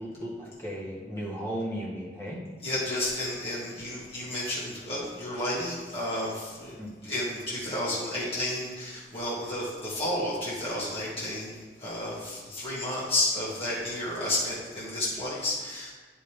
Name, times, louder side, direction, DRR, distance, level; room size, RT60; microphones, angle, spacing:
voice 1, 0.0-2.4 6.8-6.9, equal, 15° left, -4 dB, 1.7 m, -35 dB
voice 2, 2.6-6.8 7.0-15.9, left 1 dB, 30° left, -9 dB, 2.2 m, -31 dB
10.0 x 5.4 x 3.5 m, 1.4 s
head